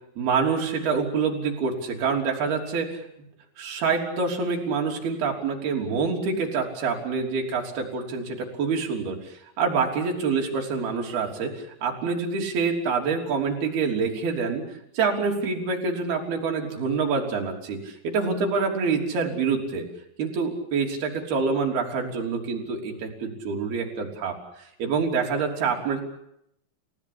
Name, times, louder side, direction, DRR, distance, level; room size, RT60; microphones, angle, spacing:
voice 1, 0.2-3.0 3.6-11.5 11.8-14.6 14.9-19.9 20.2-24.4 24.8-26.0, right 5 dB, 50° right, 1 dB, 5.0 m, -26 dB
29.5 x 16.5 x 8.7 m, 0.79 s
omnidirectional pair, 5.9 m